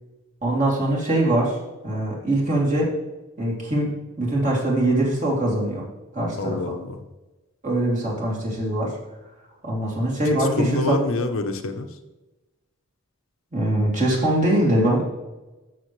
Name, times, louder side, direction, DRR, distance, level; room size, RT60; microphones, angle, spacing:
voice 1, 0.4-1.6 1.8-2.9 3.4-3.9 4.2-5.8 6.1-6.6 7.6-9.0 9.6-11.0 13.5-15.0, right 1 dB, 35° right, -4 dB, 2.7 m, -22 dB
voice 2, 6.4-7.0 10.3-12.0, left 2 dB, 60° left, 6 dB, 0.8 m, -27 dB
13.0 x 6.8 x 3.1 m, 1.1 s
head